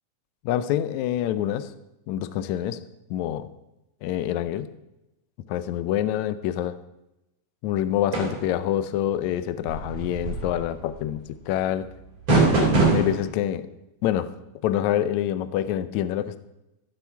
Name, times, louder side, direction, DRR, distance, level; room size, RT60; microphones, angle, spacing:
voice 1, 0.4-1.7 2.1-2.8 3.1-3.5 4.0-4.7 5.5-6.8 7.6-11.9 12.9-13.7 14.0-14.3 14.6-16.4, left 11 dB, 75° left, 13 dB, 1.7 m, -26 dB
sound 1, 8.1-8.5 9.6-11.0 12.3-13.2, right 3 dB, 35° right, 4.3 m, -22 dB
15.5 x 8.1 x 5.9 m, 0.92 s
omnidirectional pair, 4.0 m